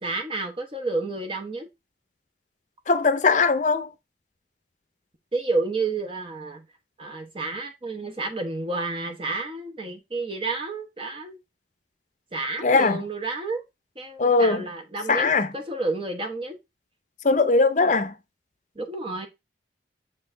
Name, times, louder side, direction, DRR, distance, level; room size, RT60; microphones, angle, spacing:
voice 1, 0.0-1.7 5.3-6.6 7.0-11.4 12.3-13.6 14.0-15.3 15.5-16.6 18.8-19.3, right 3 dB, 30° right, 1.0 m, -30 dB
voice 2, 2.9-3.9 12.6-13.0 14.2-14.7 15.1-15.5 17.2-18.2, left 3 dB, 45° left, 0.7 m, -20 dB
7.2 x 4.2 x 3.3 m
head